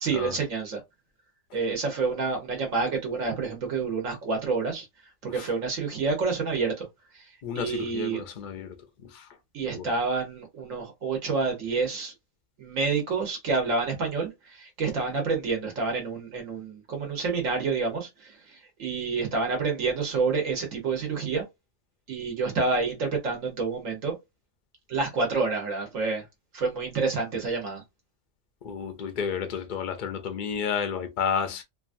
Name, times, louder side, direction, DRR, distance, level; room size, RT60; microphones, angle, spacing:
voice 1, 0.0-0.8 1.5-4.9 5.2-6.9 7.1-8.2 9.5-12.1 12.6-21.4 22.1-24.2 24.9-26.2 26.5-27.8, right 4 dB, 75° right, 1.3 m, -28 dB
voice 2, 7.4-8.7 9.1-9.3 9.7-9.9 28.6-31.6, left 7 dB, 60° left, 0.5 m, -31 dB
3.0 x 2.4 x 2.4 m
omnidirectional pair, 1.4 m